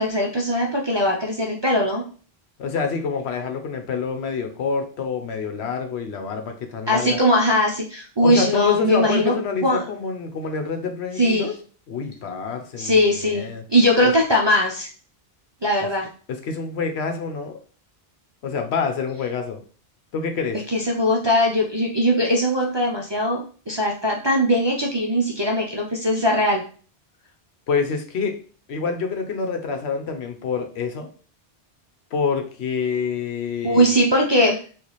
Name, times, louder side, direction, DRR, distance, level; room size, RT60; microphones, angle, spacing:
voice 1, 0.0-2.0 6.9-9.3 9.6-9.8 11.2-11.5 12.8-14.9 15.6-16.1 20.7-26.6 33.6-34.6, equal, 35° right, -3 dB, 0.4 m, -20 dB
voice 2, 2.6-7.2 8.2-11.5 11.9-13.6 16.3-17.6 18.4-19.6 20.1-20.6 27.7-28.3 28.7-31.1 32.1-34.0, left 5 dB, 80° left, 5 dB, 1.0 m, -27 dB
3.1 x 2.4 x 3.9 m, 0.40 s
omnidirectional pair, 1.1 m